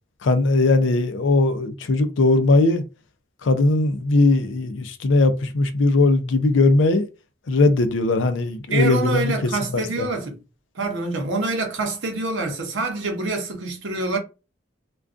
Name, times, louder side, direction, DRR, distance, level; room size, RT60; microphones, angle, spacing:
voice 1, 0.2-2.8 3.4-7.1 7.5-10.1, left 2 dB, 80° left, 0.5 m, -19 dB
voice 2, 8.7-10.4 10.7-14.2, right 3 dB, 75° right, 0.7 m, -26 dB
2.4 x 2.2 x 2.4 m
head